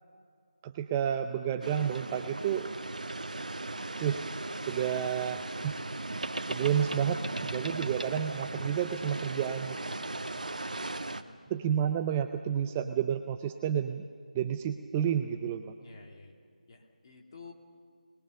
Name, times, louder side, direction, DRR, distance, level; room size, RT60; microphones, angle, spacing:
voice 1, 0.6-2.7 4.0-4.2 4.7-5.8 6.5-9.9 11.5-14.0 14.3-15.7, right 9 dB, 15° right, 8 dB, 0.5 m, -30 dB
sound 1, 1.6-11.2, right 2 dB, 65° right, 1.2 m, -37 dB
voice 2, 10.3-11.6 15.8-16.4 16.7-17.5, left 4 dB, 35° left, 1 dB, 2.7 m, -53 dB
27.0 x 21.0 x 6.7 m, 2.1 s
figure-of-eight pair, 160°, 4 cm